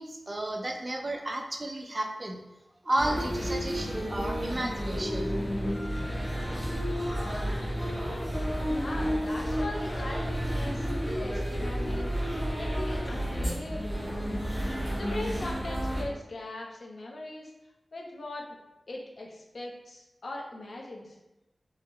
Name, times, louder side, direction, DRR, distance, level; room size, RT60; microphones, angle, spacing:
voice 1, 0.0-2.4 2.8-5.4, right 1 dB, 35° right, 2 dB, 0.4 m, -32 dB
sound 1, 3.0-16.0, equal, 10° right, 0.9 m, -31 dB
voice 2, 8.7-10.9 11.2-12.1 12.6-14.0 15.0-17.5 17.9-18.6 18.9-21.2, left 2 dB, 70° left, -1 dB, 0.6 m, -39 dB
3.7 x 2.0 x 3.1 m, 0.99 s
wide cardioid pair, 80°, 0 cm